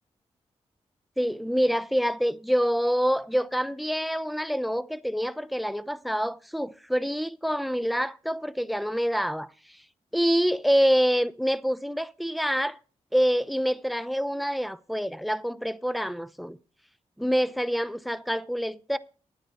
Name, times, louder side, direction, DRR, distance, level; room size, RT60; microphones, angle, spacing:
voice 1, 1.2-9.8 10.1-12.8 13.1-16.6 17.2-19.0, equal, ahead, 0.6 m, -26 dB
9.6 x 9.0 x 4.2 m
cardioid pair, 60°, 12 cm